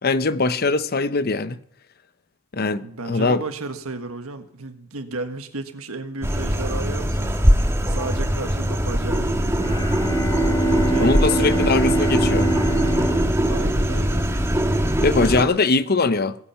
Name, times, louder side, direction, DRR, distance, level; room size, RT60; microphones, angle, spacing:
voice 1, 0.0-1.6 2.5-3.4 11.0-12.5 15.0-16.4, left 3 dB, 45° left, 0.7 m, -21 dB
voice 2, 2.8-7.5 7.9-9.8 10.6-11.9 13.4-14.3 15.4-15.6, right 3 dB, 75° right, 1.6 m, -33 dB
sound 1, 6.2-15.4, equal, 10° right, 1.5 m, -21 dB
Bowed string instrument, 9.5-14.3, right 2 dB, 20° left, 3.2 m, -25 dB
20.0 x 8.8 x 5.8 m
head